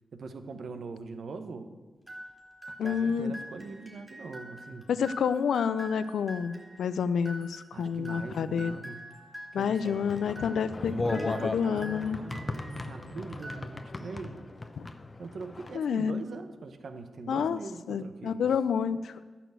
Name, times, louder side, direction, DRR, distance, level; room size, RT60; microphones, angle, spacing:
voice 1, 0.1-1.7 2.7-4.9 7.7-9.0 9.5-10.1 10.8-14.4 15.2-18.5, right 4 dB, 70° right, 8 dB, 1.0 m, -42 dB
sound 1, 2.1-12.9 13.3-14.2, right 1 dB, 10° right, 3.0 m, -46 dB
voice 2, 2.8-3.3 4.9-8.7 9.5-12.2 14.8-14.9 15.7-16.2 17.3-17.6 17.9-19.1, left 7 dB, 90° left, 14 dB, 0.4 m, -29 dB
sound 2, 9.9-15.8, left 2 dB, 35° left, 0.8 m, -37 dB
11.5 x 6.0 x 8.0 m, 1.3 s
cardioid pair, 55°, 0 cm